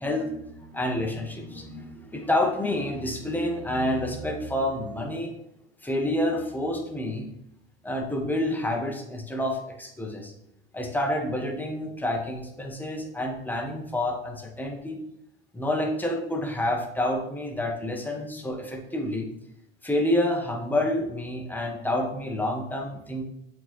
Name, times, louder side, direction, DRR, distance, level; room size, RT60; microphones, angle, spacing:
voice 1, 0.0-5.3 5.8-7.2 7.8-10.3 10.7-15.0 15.5-19.3 19.8-23.2, left 1 dB, 5° left, 1 dB, 1.3 m, -28 dB
7.4 x 4.2 x 3.2 m, 0.83 s
hypercardioid pair, 75°, 30 cm